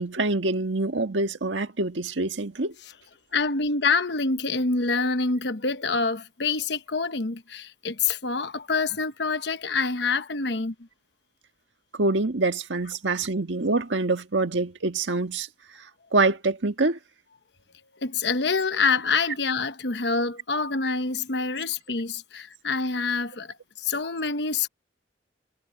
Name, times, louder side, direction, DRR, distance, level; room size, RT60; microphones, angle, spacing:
voice 1, 0.0-2.7 11.9-15.5 16.1-17.0, right 3 dB, 90° right, 1.6 m, -25 dB
voice 2, 3.3-10.7 18.0-24.7, left 4 dB, 65° left, 1.1 m, -26 dB
head